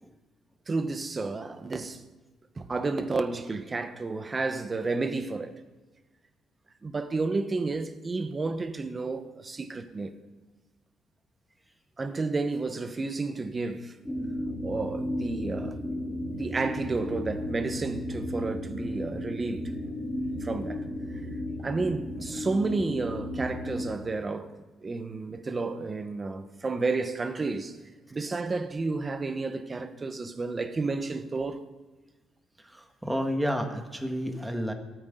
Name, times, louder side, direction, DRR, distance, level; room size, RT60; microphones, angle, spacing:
voice 1, 0.7-2.0 2.5-5.6 6.8-10.1 12.0-14.0 14.6-15.8 16.3-19.7 20.4-21.2 21.6-24.5 24.8-27.8 28.1-31.6, right 3 dB, 30° right, 1.1 m, -31 dB
sound 1, 14.0-23.9, left 1 dB, 10° left, 3.9 m, -34 dB
voice 2, 32.6-34.7, equal, 10° right, 1.7 m, -31 dB
26.5 x 9.4 x 3.9 m
cardioid pair, 90°, 0 cm